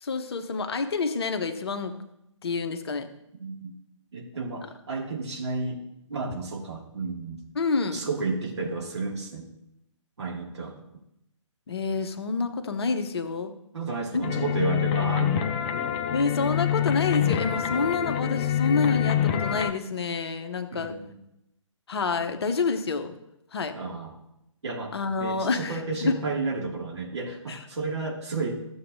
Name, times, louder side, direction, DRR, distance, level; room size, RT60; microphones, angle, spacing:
voice 1, 0.0-2.0 2.4-3.1 7.5-8.0 11.7-13.5 14.1-14.3 16.1-21.0 21.9-23.1 23.5-23.7 24.9-26.2 27.5-27.6, left 4 dB, 50° left, 7 dB, 1.0 m, -28 dB
voice 2, 3.4-3.7 4.1-5.8 6.1-7.4 7.9-9.5 10.2-10.7 13.7-15.6 20.7-21.2 23.7-24.1 24.6-24.9 25.2-28.6, right 3 dB, 60° right, 0 dB, 2.3 m, -32 dB
sound 1, 14.2-19.7, left 10 dB, 20° left, 0.5 m, -26 dB
14.5 x 7.1 x 2.7 m, 0.82 s
figure-of-eight pair, 135°, 17 cm